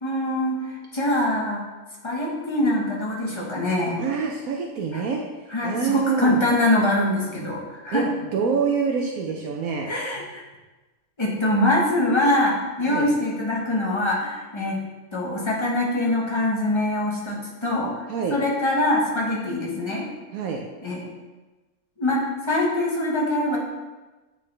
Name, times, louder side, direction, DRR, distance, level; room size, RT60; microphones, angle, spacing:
voice 1, 0.0-1.6 2.0-4.1 4.9-5.0 5.5-8.1 9.9-10.4 11.2-14.8 15.1-20.0 20.8-21.1 22.0-23.6, left 1 dB, 20° left, -4 dB, 1.0 m, -24 dB
voice 2, 4.0-5.2 5.6-6.4 7.9-8.0 8.3-9.9 12.8-13.1 18.1-18.4 20.3-20.6, right 5 dB, 75° right, 1 dB, 1.0 m, -26 dB
8.4 x 3.9 x 3.2 m, 1.2 s
omnidirectional pair, 1.6 m